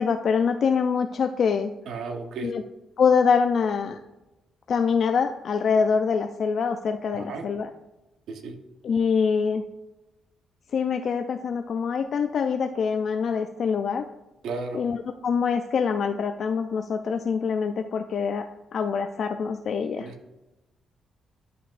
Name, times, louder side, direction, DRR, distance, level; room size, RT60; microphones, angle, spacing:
voice 1, 0.0-1.7 2.4-2.6 3.0-4.0 4.7-7.7 8.8-9.6 10.7-14.0 14.7-18.4 18.7-20.1, left 6 dB, 50° left, 6 dB, 0.4 m, -24 dB
voice 2, 1.9-2.5 7.1-7.5 8.3-8.6 14.4-14.8 20.0-20.1, right 4 dB, 75° right, 5 dB, 0.9 m, -34 dB
11.0 x 5.9 x 2.5 m, 1.0 s
cardioid pair, 140°, 0 cm